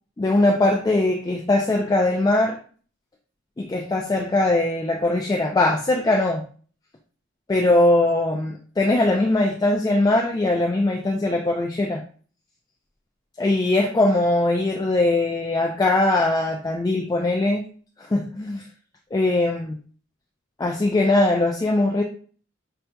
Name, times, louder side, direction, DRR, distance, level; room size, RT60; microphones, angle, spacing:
voice 1, 0.2-2.6 3.6-6.4 7.5-12.0 13.4-17.6 18.0-18.6 19.1-19.7 20.6-22.0, left 2 dB, 20° left, 1 dB, 0.4 m, -21 dB
5.6 x 2.7 x 2.2 m, 0.43 s
head